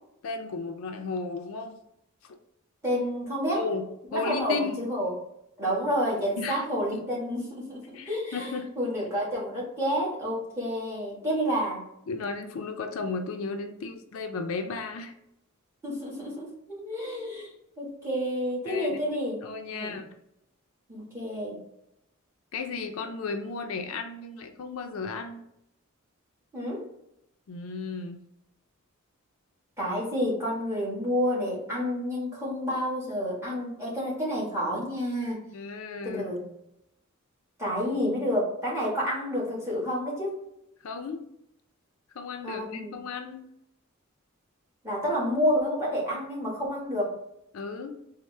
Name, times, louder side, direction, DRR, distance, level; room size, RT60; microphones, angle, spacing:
voice 1, 0.2-1.7 3.5-3.9 4.1-4.8 6.4-6.7 6.9-7.0 7.9-8.7 12.1-15.1 18.7-19.0 19.4-20.1 22.5-25.4 27.5-28.2 35.5-36.4 40.8-41.2 42.1-43.5 47.5-48.0, left 4 dB, 70° left, 5 dB, 0.4 m, -34 dB
voice 2, 2.8-3.6 4.1-5.1 5.6-8.5 8.8-11.9 15.8-19.4 19.7-20.0 20.9-21.6 26.5-26.8 29.8-35.4 36.0-36.4 37.6-40.4 42.4-42.9 44.8-47.2, equal, 15° right, -6 dB, 1.4 m, -29 dB
4.2 x 2.1 x 3.2 m, 0.80 s
head